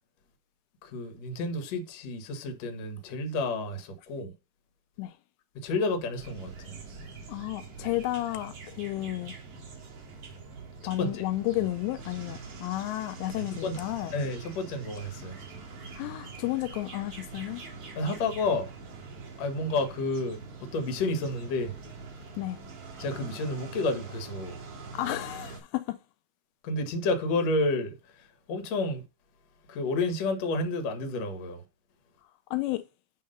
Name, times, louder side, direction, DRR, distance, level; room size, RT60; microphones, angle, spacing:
voice 1, 0.8-4.3 5.5-6.8 11.0-11.2 13.4-13.8 14.1-15.4 17.6-17.7 17.9-18.7 19.4-21.7 23.0-24.6 26.6-29.0 29.7-31.6, left 2 dB, 55° left, 2.1 m, -30 dB
sound 1, 6.2-25.6, right 4 dB, 45° right, 2.5 m, -44 dB
voice 2, 7.3-9.3 10.8-14.1 16.0-17.6 22.4-22.6 24.9-26.0 32.5-32.8, left 16 dB, 85° left, 2.7 m, -32 dB
9.3 x 3.9 x 5.3 m
omnidirectional pair, 5.0 m